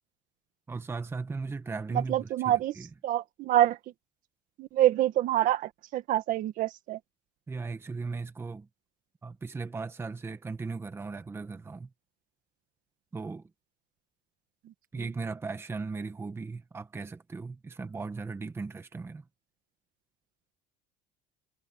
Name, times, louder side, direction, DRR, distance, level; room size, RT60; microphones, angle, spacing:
voice 1, 0.7-2.9 7.5-8.7 9.2-11.9 13.1-13.5 14.9-19.2, right 4 dB, 15° right, 1.2 m, -37 dB
voice 2, 1.9-2.8 3.0-3.8 4.6-7.0 14.7-14.8, right 13 dB, 50° right, 1.7 m, -26 dB
cardioid pair, 150°, 17 cm